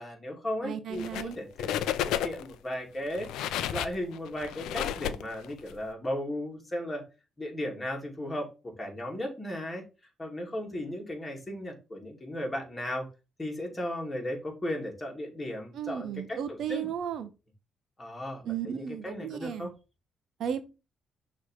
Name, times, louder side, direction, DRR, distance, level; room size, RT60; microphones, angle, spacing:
voice 1, 0.0-1.9 2.2-3.3 3.7-7.0 7.4-9.8 10.2-13.1 13.4-16.9 18.0-19.7, left 1 dB, 20° left, 2.7 m, -36 dB
voice 2, 0.6-1.4 15.7-17.3 18.4-19.7 20.4-20.6, right 9 dB, 70° right, 0.8 m, -34 dB
sound 1, 0.9-1.3 1.6-2.5 3.1-5.7, left 11 dB, 90° left, 0.5 m, -32 dB
6.3 x 3.2 x 5.7 m
cardioid pair, 90°, 0 cm